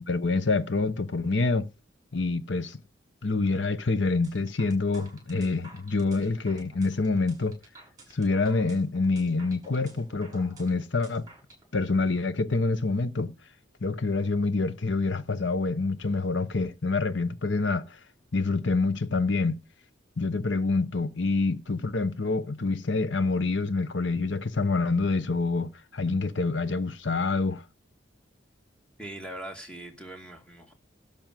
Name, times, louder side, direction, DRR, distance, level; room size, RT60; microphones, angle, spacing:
voice 1, 0.1-1.7 2.1-2.8 3.2-7.6 8.1-11.3 11.7-13.3 13.8-18.0 18.3-19.6 20.2-27.6, left 3 dB, 70° left, 1.0 m, -26 dB
sound 1, 4.2-11.6, right 2 dB, 20° right, 6.1 m, -51 dB
voice 2, 29.0-30.7, right 1 dB, 5° left, 2.3 m, -41 dB
12.5 x 5.2 x 7.7 m
head